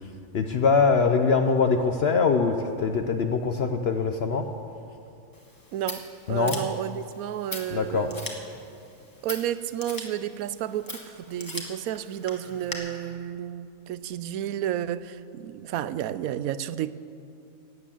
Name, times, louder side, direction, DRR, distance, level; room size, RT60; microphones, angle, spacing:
voice 1, 0.3-4.5 6.3-6.7 7.7-8.2, left 5 dB, 55° left, 0.8 m, -23 dB
Scissors, 5.3-12.7, left 1 dB, 15° left, 1.6 m, -41 dB
voice 2, 5.7-8.2 9.2-16.9, right 11 dB, 80° right, 1.0 m, -31 dB
16.5 x 9.8 x 7.1 m
omnidirectional pair, 1.5 m